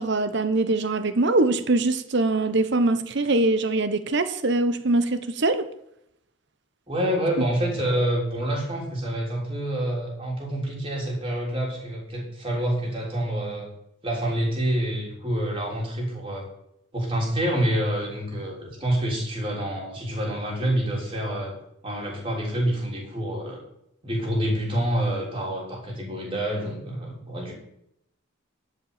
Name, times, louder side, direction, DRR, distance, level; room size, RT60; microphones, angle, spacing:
voice 1, 0.0-5.7, right 2 dB, 55° right, 0.9 m, -23 dB
voice 2, 6.9-13.7 14.0-16.5 16.9-21.6 21.8-23.6 24.0-27.5, right 1 dB, 25° right, 3.5 m, -27 dB
12.5 x 5.5 x 8.7 m
head